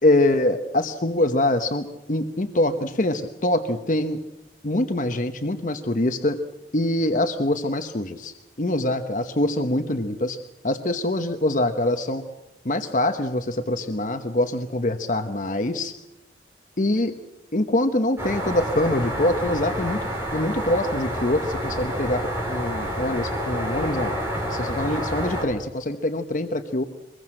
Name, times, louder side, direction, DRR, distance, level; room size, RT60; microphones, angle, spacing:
voice 1, 0.0-4.2 4.6-6.4 6.7-12.2 12.6-15.9 16.8-17.1 17.5-20.1 20.3-24.1 24.5-26.8, left 1 dB, 45° left, 7 dB, 1.0 m, -24 dB
sound 1, 18.2-25.4, equal, 15° right, 5.9 m, -28 dB
24.5 x 21.5 x 7.7 m, 0.94 s
head